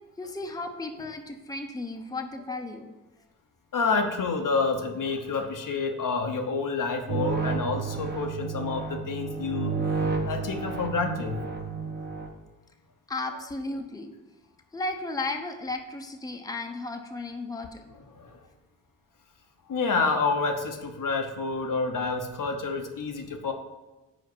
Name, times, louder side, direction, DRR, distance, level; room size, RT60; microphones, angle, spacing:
voice 1, 0.2-2.9 13.1-14.1 14.7-17.8, left 2 dB, 10° left, 4 dB, 0.8 m, -34 dB
voice 2, 3.7-9.8 10.2-11.4 18.1-18.4 19.7-23.5, left 4 dB, 50° left, 4 dB, 0.9 m, -28 dB
sound 1, 7.1-12.3, right 5 dB, 25° right, 1.1 m, -31 dB
5.0 x 4.4 x 6.1 m, 1.1 s
supercardioid pair, 45°, 40 cm